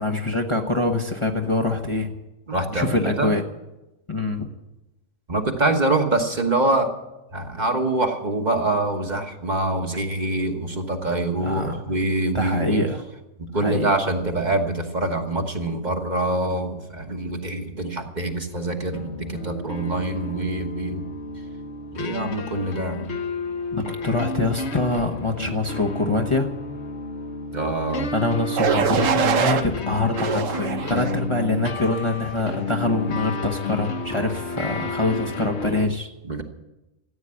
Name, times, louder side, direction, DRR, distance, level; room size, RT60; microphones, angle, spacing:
voice 1, 0.0-2.1 2.7-3.4 4.1-4.5 11.4-11.9 12.3-13.0 13.5-13.9 23.7-26.6 28.1-36.1, left 2 dB, 25° left, 2 dB, 1.0 m, -24 dB
voice 2, 2.5-3.3 5.3-6.9 7.3-12.8 13.5-21.0 21.9-23.1 27.5-28.1 36.2-36.4, right 2 dB, 35° right, 4 dB, 1.3 m, -25 dB
sound 1, 18.9-35.9, left 3 dB, 60° left, 1.2 m, -31 dB
sound 2, 28.6-29.6 30.2-31.2 31.8-32.2, right 7 dB, 80° right, 1.2 m, -24 dB
14.5 x 9.0 x 9.8 m, 0.99 s
omnidirectional pair, 1.3 m